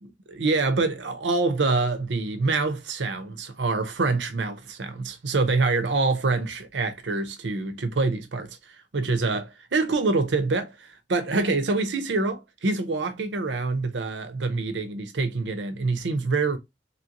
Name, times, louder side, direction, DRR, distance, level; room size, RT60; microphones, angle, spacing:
voice 1, 0.0-16.6, right 3 dB, 75° right, 0.7 m, -26 dB
2.9 x 2.7 x 2.8 m
head